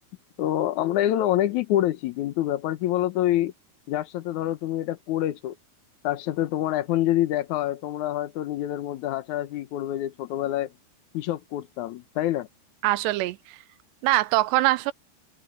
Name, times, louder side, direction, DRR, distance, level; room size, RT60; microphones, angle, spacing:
voice 1, 0.4-3.5 3.9-5.5 6.0-10.7 11.1-12.5, left 13 dB, 85° left, 1.6 m, -26 dB
voice 2, 12.8-13.6 14.0-14.9, right 17 dB, 85° right, 2.9 m, -23 dB
omnidirectional pair, 4.8 m